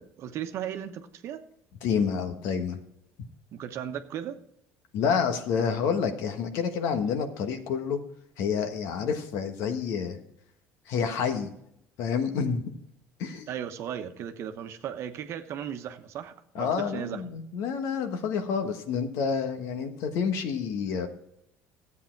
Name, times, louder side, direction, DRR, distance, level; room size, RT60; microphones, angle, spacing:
voice 1, 0.0-1.4 3.5-4.4 13.5-17.2, right 9 dB, 60° right, 8 dB, 1.0 m, -36 dB
voice 2, 1.8-2.8 4.9-8.0 8.4-10.2 10.9-11.5 12.0-12.6 13.2-13.5 16.5-21.1, left 6 dB, 75° left, 7 dB, 1.4 m, -28 dB
13.0 x 8.4 x 4.6 m, 0.76 s
supercardioid pair, 95°, 5 cm